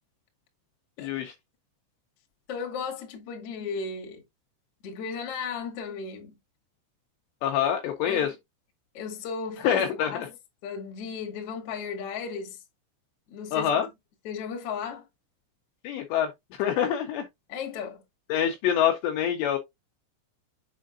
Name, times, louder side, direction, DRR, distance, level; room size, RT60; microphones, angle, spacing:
voice 1, 1.0-1.3 7.4-8.3 9.6-10.3 13.5-13.9 15.8-17.3 18.3-19.6, left 9 dB, 80° left, 2.6 m, -26 dB
voice 2, 2.5-4.2 4.8-6.3 8.0-8.3 8.9-10.3 10.6-12.6 13.3-13.9 14.2-15.0 17.5-18.0, left 5 dB, 60° left, 1.6 m, -35 dB
7.5 x 5.5 x 2.4 m
omnidirectional pair, 5.8 m